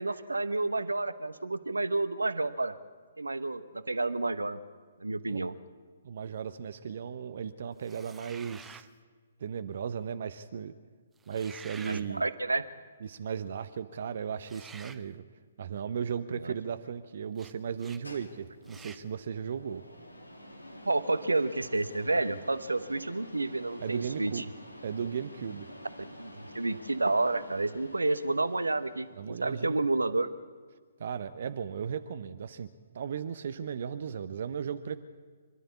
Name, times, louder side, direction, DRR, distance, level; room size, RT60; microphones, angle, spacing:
voice 1, 0.0-2.8 3.2-4.6 5.0-5.5 11.9-12.6 16.4-16.5 20.9-24.4 26.2-30.3, right 2 dB, 75° right, 13 dB, 1.0 m, -30 dB
voice 2, 6.0-8.9 9.4-10.7 11.3-12.2 13.0-15.2 15.6-19.8 23.8-24.4 24.8-25.7 29.2-29.8 31.0-32.7 32.9-35.0, right 7 dB, 50° right, 10 dB, 0.8 m, -36 dB
sound 1, 7.8-8.9 11.2-12.1 14.4-15.0 17.4-17.5 17.8-18.0 18.6-19.0, right 5 dB, 10° right, 0.7 m, -49 dB
sound 2, 17.7-29.3, left 1 dB, 85° left, 2.8 m, -49 dB
25.5 x 12.5 x 8.4 m, 1.5 s
figure-of-eight pair, 130°, 0 cm